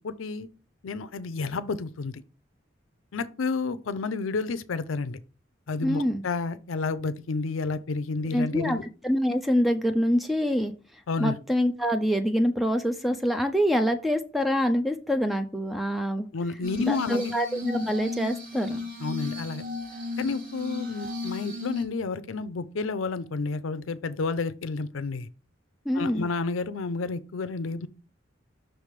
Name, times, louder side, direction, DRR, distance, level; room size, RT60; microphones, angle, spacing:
voice 1, 0.0-0.5 0.8-2.2 3.1-5.2 5.7-8.8 11.1-11.4 16.3-17.3 19.0-19.6 20.2-25.3 25.9-27.9, left 4 dB, 90° left, 0.5 m, -30 dB
voice 2, 5.8-6.2 8.3-10.7 11.2-16.3 16.8-18.9 25.9-26.3, equal, ahead, 0.4 m, -25 dB
Glass, 16.6-21.8, left 3 dB, 45° right, 1.4 m, -35 dB
6.2 x 3.2 x 5.1 m
head